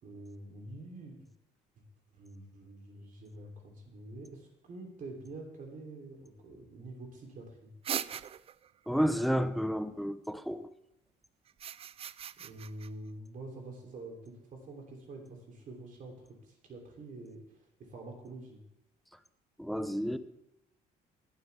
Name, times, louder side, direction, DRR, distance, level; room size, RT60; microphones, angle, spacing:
voice 1, 0.0-1.3 2.1-7.7 12.4-18.6, right 2 dB, 50° right, 3.2 m, -47 dB
sound 1, 7.8-8.7 11.5-12.9, right 9 dB, 35° right, 0.4 m, -39 dB
voice 2, 8.9-10.7 19.6-20.2, equal, ahead, 0.7 m, -31 dB
20.5 x 8.1 x 3.5 m
cardioid pair, 110°, 17 cm